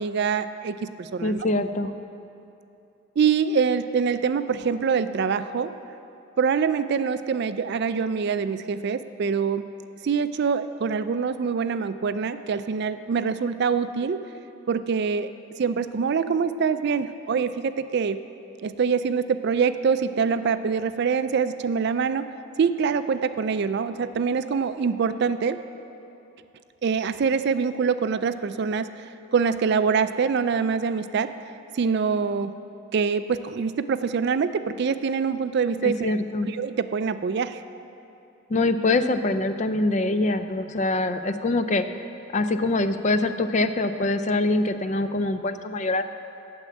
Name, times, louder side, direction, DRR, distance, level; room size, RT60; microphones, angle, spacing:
voice 1, 0.0-1.5 3.2-5.7 6.4-9.7 10.0-14.2 14.7-15.3 15.6-18.2 18.6-22.3 22.6-25.6 26.8-31.3 31.7-32.6 32.9-36.2 36.5-37.6, right 6 dB, 50° right, 12 dB, 0.3 m, -25 dB
voice 2, 1.2-1.9 35.8-36.5 38.5-41.9 42.3-46.0, left 2 dB, 35° left, 10 dB, 0.4 m, -24 dB
9.1 x 7.0 x 8.4 m, 2.7 s
head